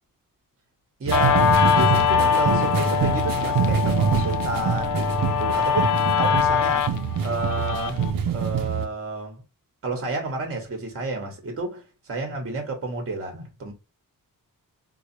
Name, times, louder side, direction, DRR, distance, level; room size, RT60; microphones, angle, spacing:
voice 1, 1.0-6.9 7.2-8.0 8.3-9.4 9.8-13.7, right 3 dB, 40° right, 1.2 m, -31 dB
Guitar, 1.1-8.1, left 9 dB, 60° left, 0.6 m, -23 dB
sound 1, 1.1-8.8, right 6 dB, 75° right, 0.7 m, -25 dB
4.8 x 2.4 x 2.7 m
wide cardioid pair, 170°, 34 cm